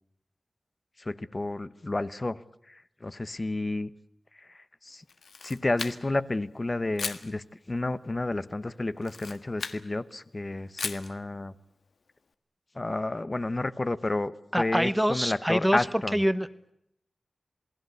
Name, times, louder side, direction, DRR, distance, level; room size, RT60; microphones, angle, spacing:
voice 1, 1.0-2.4 2.7-3.9 4.4-5.0 5.4-11.5 12.7-16.2, left 2 dB, 30° left, 15 dB, 0.9 m, -31 dB
Camera, 5.1-6.3 7.0-7.3 9.0-9.8 10.8-11.1, left 4 dB, 85° left, 1.5 m, -36 dB
voice 2, 14.5-15.8 16.1-16.7, equal, 5° right, 13 dB, 1.1 m, -26 dB
28.0 x 20.0 x 8.2 m, 0.77 s
wide cardioid pair, 110°, 0 cm